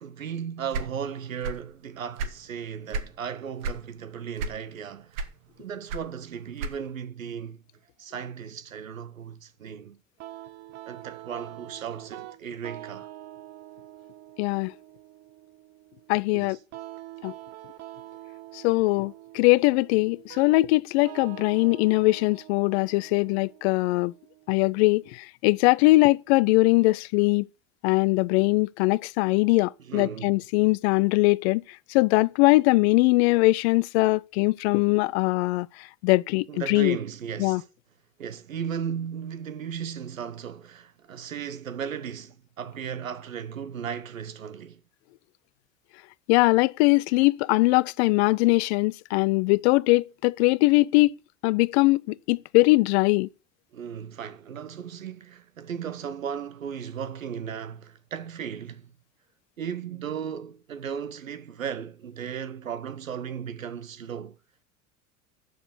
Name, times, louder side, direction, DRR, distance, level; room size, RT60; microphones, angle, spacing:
voice 1, 0.0-5.3 5.6-7.6 8.0-10.0 10.9-13.1 16.3-16.6 29.8-30.4 36.5-37.6 38.2-44.8 53.7-58.9 59.6-64.4, right 8 dB, 85° right, 0.7 m, -36 dB
sound 1, 0.7-1.7 2.0-3.2 3.6-3.9 4.4-4.8 5.1-7.0, right 3 dB, 60° right, 1.2 m, -32 dB
sound 2, 10.2-25.1, right 14 dB, 40° right, 0.8 m, -46 dB
voice 2, 14.4-14.7 16.1-16.6 17.2-17.3 18.5-24.1 24.5-27.5 27.8-31.6 31.9-37.0 37.4-37.6 46.3-51.1 51.4-53.3, left 22 dB, 55° left, 0.5 m, -21 dB
7.8 x 6.8 x 8.2 m
figure-of-eight pair, 75°, 39 cm